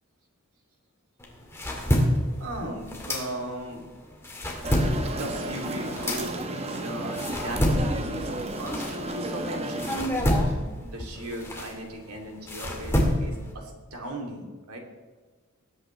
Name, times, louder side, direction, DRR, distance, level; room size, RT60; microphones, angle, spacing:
sound 1, 1.2-3.7 4.1-9.4 9.8-13.5, equal, 10° left, 2.0 m, -28 dB
voice 1, 2.4-3.8 5.2-14.8, right 1 dB, 90° right, 1 dB, 2.8 m, -37 dB
sound 2, 4.6-10.1, right 2 dB, 30° right, 1.0 m, -33 dB
19.5 x 8.6 x 3.2 m, 1.4 s
head